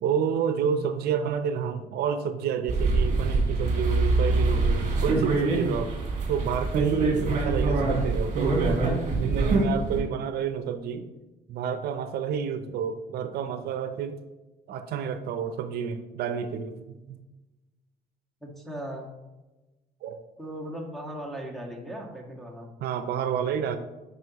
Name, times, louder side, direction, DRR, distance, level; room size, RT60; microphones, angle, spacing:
voice 1, 0.0-6.0 6.3-8.9 9.2-11.1 11.5-14.2 14.7-17.2 20.0-20.2 22.8-23.8, right 7 dB, 70° right, 9 dB, 0.6 m, -29 dB
sound 1, 2.7-10.0, right 3 dB, 50° right, 2.4 m, -24 dB
voice 2, 18.4-19.1 20.4-22.7, right 1 dB, ahead, 0 dB, 1.6 m, -38 dB
9.4 x 5.5 x 3.0 m, 1.1 s
cardioid pair, 110°, 17 cm